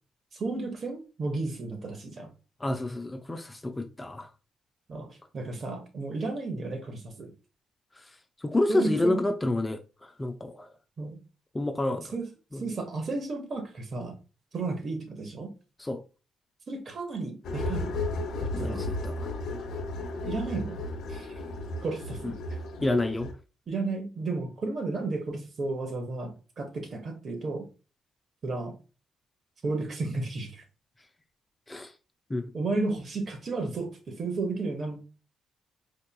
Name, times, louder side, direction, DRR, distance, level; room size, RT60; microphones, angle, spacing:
voice 1, 0.3-2.3 4.9-7.3 8.7-9.2 11.0-11.2 12.0-12.3 12.6-14.2 14.5-15.5 16.7-18.1 18.7-18.9 20.2-20.8 21.1-21.3 21.8-22.3 23.7-27.7 28.4-28.7 29.6-30.6 32.5-35.0, right 3 dB, 45° right, 1.1 m, -33 dB
voice 2, 2.6-4.3 8.4-10.7 11.5-12.1 12.5-12.6 15.8-16.0 18.5-19.3 22.2-22.3 22.8-23.3 31.7-31.9 32.3-32.5, left 2 dB, 15° left, 0.4 m, -29 dB
sound 1, 17.4-23.3, left 2 dB, 70° left, 0.8 m, -34 dB
4.6 x 2.9 x 2.2 m
cardioid pair, 90°, 0 cm